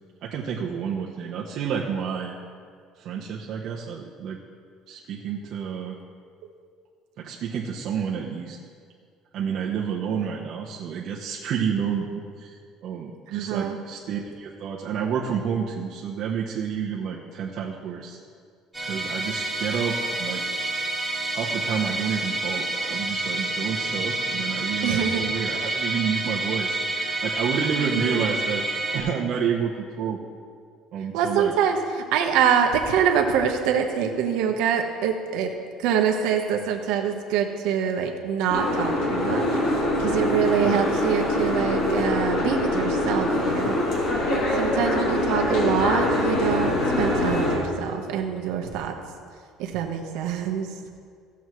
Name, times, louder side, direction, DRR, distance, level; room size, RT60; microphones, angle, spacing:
voice 1, 0.2-2.4 3.0-4.4 4.9-6.0 7.2-8.6 9.3-18.2 18.8-20.4 21.3-28.7 28.9-30.2 30.9-31.5 40.6-40.9, right 7 dB, 50° right, -3 dB, 0.8 m, -29 dB
voice 2, 13.3-13.8 24.8-25.2 27.8-28.3 31.1-35.5 35.8-39.5 40.0-43.8 44.5-48.9 49.6-50.7, right 8 dB, 75° right, 3 dB, 1.1 m, -25 dB
Musical instrument, 18.7-29.0, right 2 dB, 5° right, 1.6 m, -28 dB
Boat Water vehicle, 38.5-47.6, left 1 dB, 60° left, 2.6 m, -24 dB
16.0 x 7.1 x 3.1 m, 2.1 s
cardioid pair, 165°, 0 cm